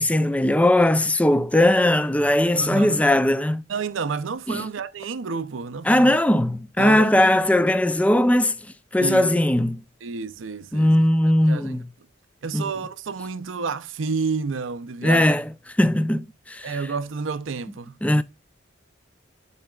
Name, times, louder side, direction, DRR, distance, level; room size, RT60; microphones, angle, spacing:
voice 1, 0.0-3.6 4.5-4.6 5.9-8.6 8.9-9.8 10.7-11.8 12.5-12.6 15.0-15.4 15.8-16.8 18.0-18.2, left 1 dB, 5° left, 0.4 m, -19 dB
voice 2, 2.5-3.0 3.7-6.2 6.8-7.2 9.0-9.4 10.0-11.0 11.2-11.8 12.4-15.4 16.6-18.0, right 5 dB, 80° right, 0.6 m, -30 dB
11.0 x 4.2 x 2.3 m
head